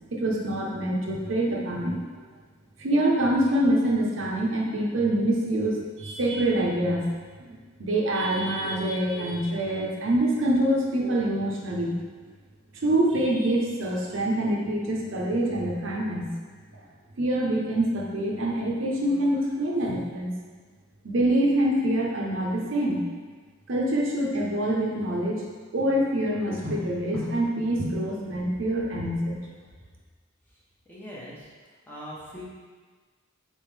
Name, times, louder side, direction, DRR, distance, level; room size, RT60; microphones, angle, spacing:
voice 1, 0.1-2.0 2.8-7.1 7.4-11.9 12.8-16.3 17.2-20.3 21.0-23.0 23.7-25.4 25.7-29.4, right 1 dB, 70° right, -2 dB, 0.7 m, -25 dB
voice 2, 30.9-31.5 31.9-32.4, equal, 10° left, -8 dB, 0.9 m, -41 dB
4.3 x 3.5 x 3.2 m, 1.5 s
head